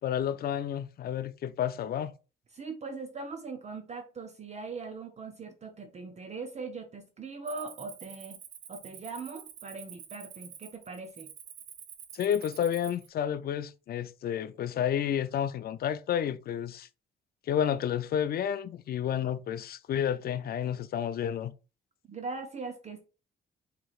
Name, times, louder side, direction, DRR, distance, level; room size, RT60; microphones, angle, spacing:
voice 1, 0.0-2.1 12.1-16.9 17.5-21.5, left 9 dB, 50° left, 0.4 m, -30 dB
voice 2, 2.5-8.4 8.7-11.3 22.0-23.1, right 4 dB, 35° right, 0.5 m, -40 dB
Cricket, 7.5-13.1, right 9 dB, 80° right, 0.7 m, -48 dB
4.6 x 3.0 x 2.4 m
cardioid pair, 90°, 20 cm